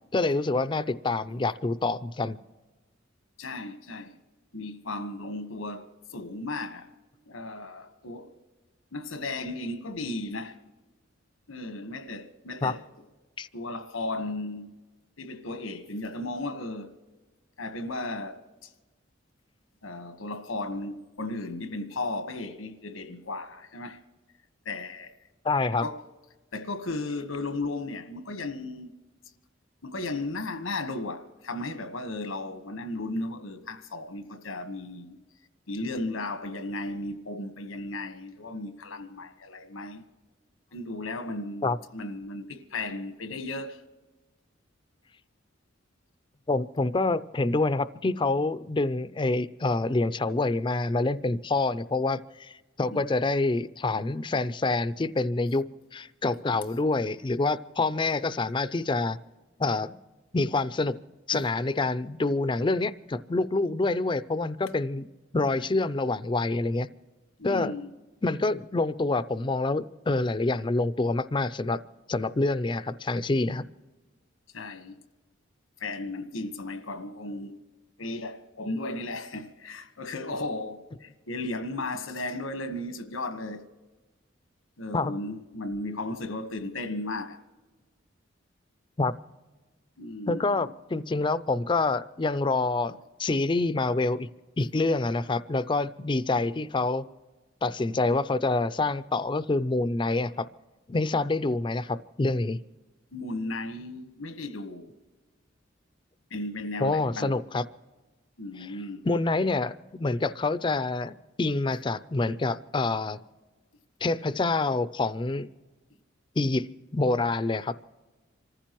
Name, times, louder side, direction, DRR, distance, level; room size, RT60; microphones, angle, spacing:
voice 1, 0.1-2.4 12.6-12.7 13.4-13.5 25.4-25.8 41.6-41.8 46.5-55.7 55.9-59.2 59.6-60.0 60.3-61.0 61.3-65.0 65.3-66.9 67.4-67.7 68.2-71.8 72.1-73.7 84.9-85.1 89.0-89.1 90.3-92.9 93.2-94.3 94.6-97.0 97.6-100.5 100.9-102.6 106.8-107.6 109.1-113.2 114.0-115.5 116.4-117.7, left 3 dB, 25° left, 0.4 m, -27 dB
voice 2, 3.4-4.2 4.5-6.9 7.3-8.3 8.9-10.6 11.5-12.8 13.5-14.7 15.2-16.9 17.6-18.7 19.8-24.0 24.6-25.1 25.8-26.0 26.5-28.9 29.8-35.2 35.7-40.0 40.7-43.8 52.9-53.1 61.3-61.4 67.4-67.9 74.5-75.0 75.8-77.5 78.0-83.6 84.8-87.4 90.0-90.7 103.1-104.9 106.3-107.4 108.4-109.1, left 2 dB, 90° left, 1.3 m, -35 dB
27.0 x 14.5 x 3.0 m
head